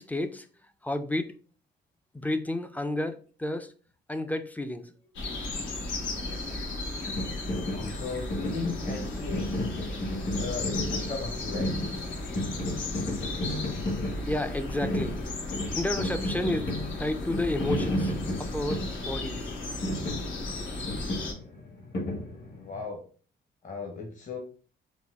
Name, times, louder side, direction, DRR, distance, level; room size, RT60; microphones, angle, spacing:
voice 1, 0.0-1.3 2.1-3.7 4.1-4.9 14.3-15.2 15.7-16.7 17.0-19.5, left 1 dB, 10° left, 8 dB, 0.3 m, -31 dB
sound 1, 5.2-21.3, left 2 dB, 80° left, 0.8 m, -35 dB
sound 2, 7.1-22.8, left 1 dB, 55° left, 1.1 m, -34 dB
voice 2, 7.7-9.6 10.4-11.8 20.5-20.6 22.5-23.0 23.6-24.4, left 4 dB, 40° left, 0 dB, 0.8 m, -36 dB
4.0 x 2.2 x 2.3 m, 0.41 s
cardioid pair, 90°, 20 cm